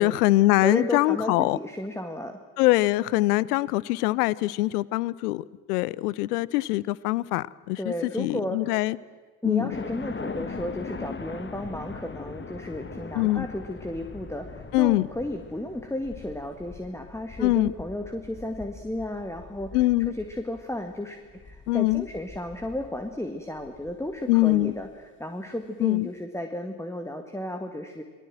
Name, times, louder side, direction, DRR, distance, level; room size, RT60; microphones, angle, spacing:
voice 1, 0.0-1.6 2.6-9.0 9.4-9.7 13.1-13.5 14.7-15.1 17.4-17.7 19.7-20.1 21.7-22.0 24.3-24.7 25.8-26.1, left 19 dB, 70° left, 23 dB, 0.7 m, -23 dB
voice 2, 0.6-2.4 7.8-8.7 9.4-19.8 20.1-21.2 21.4-24.9 25.2-28.0, left 1 dB, 5° left, 6 dB, 2.0 m, -33 dB
sound 1, 9.7-24.9, left 4 dB, 25° left, 1.9 m, -41 dB
27.5 x 19.0 x 7.7 m, 1.5 s
figure-of-eight pair, 60°, 49 cm